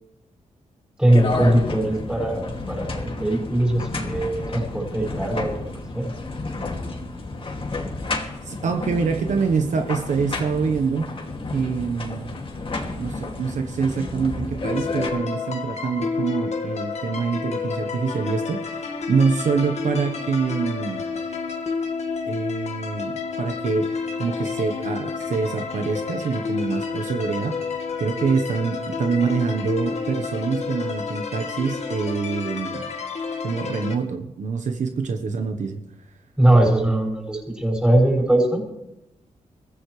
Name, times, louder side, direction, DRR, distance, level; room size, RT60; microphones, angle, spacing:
voice 1, 1.0-5.6 5.9-6.1 36.4-38.6, right 1 dB, 5° right, -1 dB, 6.0 m, -20 dB
sound 1, 1.1-15.1, left 2 dB, 45° left, 2.4 m, -31 dB
voice 2, 8.5-11.1 11.5-12.4 13.0-21.0 22.3-32.9 33.4-35.8, right 5 dB, 70° right, 5 dB, 1.2 m, -25 dB
sound 2, 14.6-34.0, left 5 dB, 60° left, 1.8 m, -30 dB
22.5 x 15.0 x 3.3 m, 0.87 s
wide cardioid pair, 105°, 13 cm